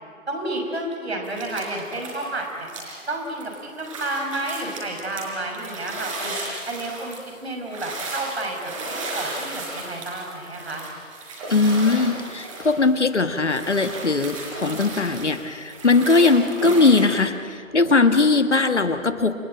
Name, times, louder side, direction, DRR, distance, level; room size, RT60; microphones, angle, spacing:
voice 1, 0.3-2.7 3.0-6.4 6.6-8.7 9.1-10.8, right 2 dB, 50° right, 2 dB, 5.9 m, -31 dB
sound 1, 1.2-2.3 2.6-17.2, right 2 dB, 25° right, 5.1 m, -35 dB
voice 2, 11.5-19.3, left 3 dB, 60° left, 9 dB, 1.6 m, -20 dB
29.0 x 18.5 x 9.0 m, 2.1 s
figure-of-eight pair, 150°, 40 cm